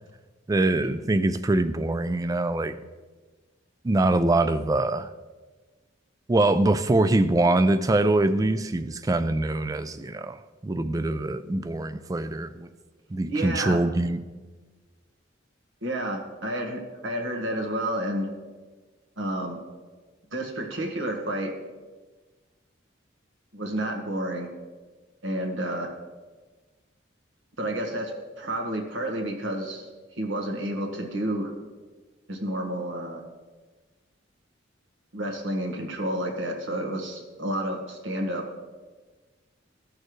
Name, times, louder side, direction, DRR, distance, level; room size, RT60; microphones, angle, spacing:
voice 1, 0.5-2.8 3.8-5.1 6.3-10.4 10.6-12.7 13.1-14.2, right 2 dB, 20° right, 0.3 m, -23 dB
voice 2, 13.3-13.8 15.8-18.3 19.2-19.6 20.3-21.5 23.5-24.5 25.2-25.9 27.6-28.1 28.4-29.9 30.2-31.5 32.3-33.2 35.1-38.4, right 1 dB, 80° right, 1.5 m, -30 dB
14.5 x 6.5 x 3.1 m
head